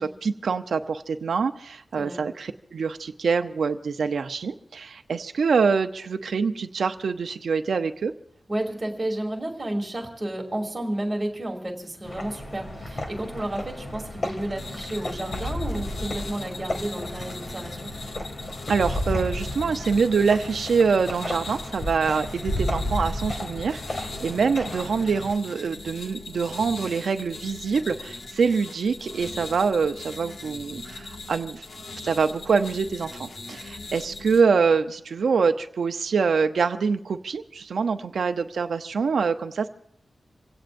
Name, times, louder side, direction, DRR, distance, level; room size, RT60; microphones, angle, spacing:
voice 1, 0.0-8.1 18.7-31.6 32.0-39.7, right 5 dB, 75° right, 7 dB, 0.7 m, -25 dB
voice 2, 8.5-18.0, right 1 dB, 20° right, 1 dB, 2.8 m, -31 dB
sound 1, 12.0-25.3, left 1 dB, 40° left, 2.2 m, -33 dB
sound 2, 14.6-34.4, left 3 dB, 70° left, 1.8 m, -40 dB
27.5 x 16.5 x 2.6 m, 0.70 s
wide cardioid pair, 160°, 0 cm